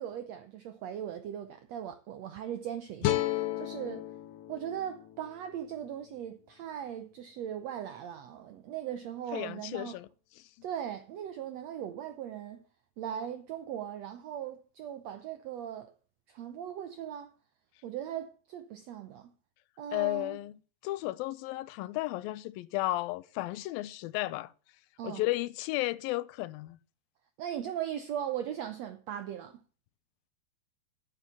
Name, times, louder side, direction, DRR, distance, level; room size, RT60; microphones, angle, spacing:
voice 1, 0.0-4.1 4.5-10.0 10.6-12.6 13.0-15.9 16.3-17.3 17.8-19.3 19.8-20.4 25.0-25.2 27.4-29.6, right 10 dB, 85° right, 1.5 m, -39 dB
sound 1, 3.0-6.2, left 14 dB, 75° left, 2.2 m, -34 dB
voice 2, 9.3-10.1 10.4-10.5 19.9-20.5 20.8-24.5 25.0-26.8, left 18 dB, 90° left, 2.4 m, -33 dB
9.5 x 7.1 x 6.9 m
omnidirectional pair, 4.1 m